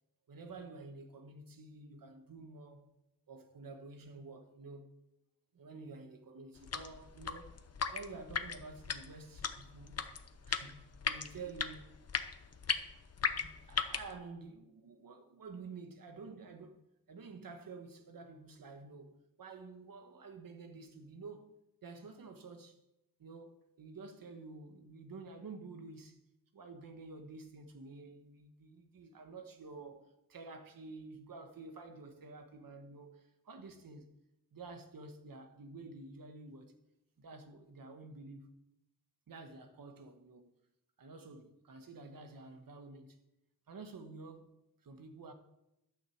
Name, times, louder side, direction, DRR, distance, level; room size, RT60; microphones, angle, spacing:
voice 1, 0.3-2.9 3.3-4.9 5.5-7.6 7.9-10.1 10.5-12.0 13.2-16.8 17.1-22.8 23.2-26.2 26.5-34.1 34.5-36.7 37.2-38.6 39.3-40.5 41.0-43.2 43.7-44.5 44.8-45.3, right 3 dB, 65° right, 1.4 m, -50 dB
sound 1, 6.6-14.1, left 6 dB, 45° left, 0.7 m, -38 dB
11.5 x 6.5 x 7.2 m
wide cardioid pair, 165°, 36 cm